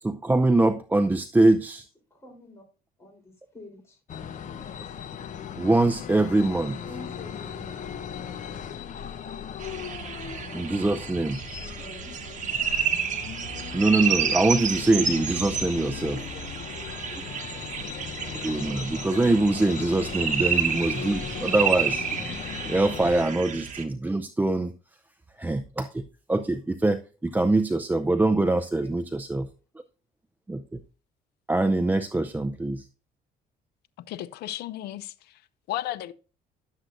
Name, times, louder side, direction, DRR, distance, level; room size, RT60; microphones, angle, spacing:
voice 1, 0.0-1.9 5.6-6.8 10.5-11.4 13.7-16.2 18.2-24.7 25.4-26.0 26.3-29.5 30.5-30.8 31.5-32.9, right 2 dB, 10° right, 0.5 m, -24 dB
voice 2, 2.1-2.6 3.0-4.0 6.8-7.9 11.6-12.2 15.8-17.6 28.4-29.0, left 1 dB, 15° left, 3.7 m, -47 dB
sound 1, 4.1-23.2, left 8 dB, 45° left, 0.8 m, -38 dB
sound 2, 9.6-23.8, right 7 dB, 45° right, 1.4 m, -30 dB
voice 3, 34.1-35.4 35.7-36.1, left 14 dB, 75° left, 0.6 m, -34 dB
11.5 x 7.6 x 2.6 m
cardioid pair, 110°, 17 cm